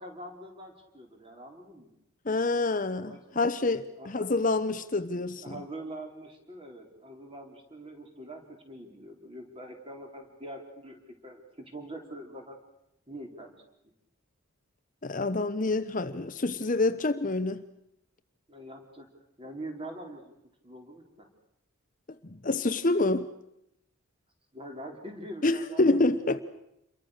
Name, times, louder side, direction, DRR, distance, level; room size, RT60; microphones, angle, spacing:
voice 1, 0.0-1.9 3.1-3.4 3.9-4.3 4.9-5.0 5.4-12.6 13.1-13.5 18.5-19.1 19.4-20.3 20.6-21.3 24.5-26.3, right 1 dB, 25° right, 4.1 m, -44 dB
voice 2, 2.3-5.5 15.0-17.6 22.3-23.3 25.4-26.4, left 2 dB, 35° left, 0.8 m, -27 dB
28.5 x 23.0 x 6.6 m
head